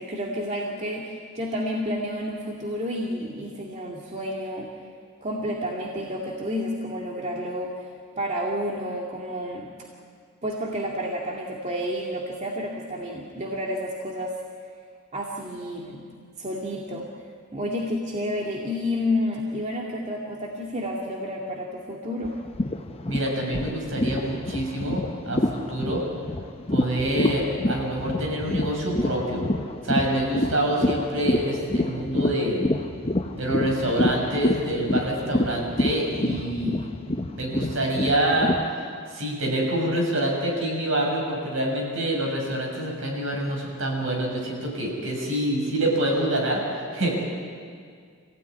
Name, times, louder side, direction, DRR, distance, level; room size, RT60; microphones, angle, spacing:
voice 1, 0.0-4.7 5.2-7.7 8.2-9.7 10.4-14.3 15.1-16.1 16.4-17.1 17.5-22.4, equal, 35° right, -2 dB, 2.2 m, -30 dB
sound 1, 22.2-38.6, left 1 dB, 30° left, 0.9 m, -27 dB
voice 2, 23.0-26.0 26.7-29.5 29.8-32.7 33.4-36.9 37.3-38.6 39.1-46.6 46.9-47.2, right 1 dB, 70° right, -1 dB, 7.1 m, -26 dB
26.0 x 16.5 x 9.7 m, 2.1 s
head